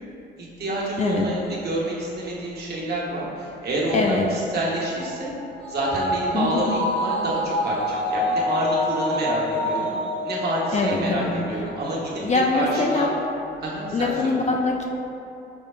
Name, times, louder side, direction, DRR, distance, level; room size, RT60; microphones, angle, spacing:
voice 1, 0.4-5.3 5.7-9.9 10.2-12.2 12.5-13.1 13.6-14.4, right 1 dB, 55° right, -5 dB, 1.2 m, -28 dB
voice 2, 3.9-4.3 6.3-6.7 10.7-11.3 12.2-13.1 13.9-14.9, left 3 dB, 35° left, 1 dB, 0.4 m, -23 dB
sound 1, 4.6-11.3 11.6-11.7, left 1 dB, 65° left, 1.1 m, -27 dB
5.1 x 2.3 x 4.4 m, 2.8 s
cardioid pair, 90°, 20 cm